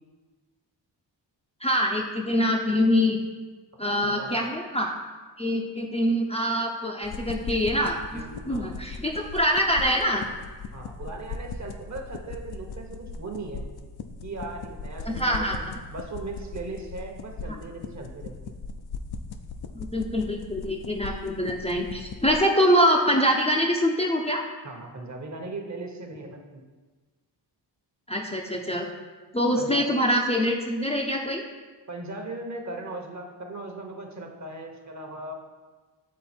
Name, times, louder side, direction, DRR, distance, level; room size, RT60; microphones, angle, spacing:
voice 1, 1.6-3.2 3.8-4.9 5.4-10.3 15.1-15.7 19.7-24.4 28.1-28.9 29.3-31.4, equal, 15° left, -1 dB, 0.6 m, -24 dB
voice 2, 4.0-4.5 8.1-8.8 10.7-13.6 14.2-18.5 24.6-26.6 29.6-29.9 31.9-35.3, right 2 dB, 40° right, 3 dB, 1.1 m, -38 dB
sound 1, 7.0-22.4, left 4 dB, 55° left, 0.6 m, -39 dB
7.4 x 3.8 x 4.3 m, 1.4 s
cardioid pair, 65°, 45 cm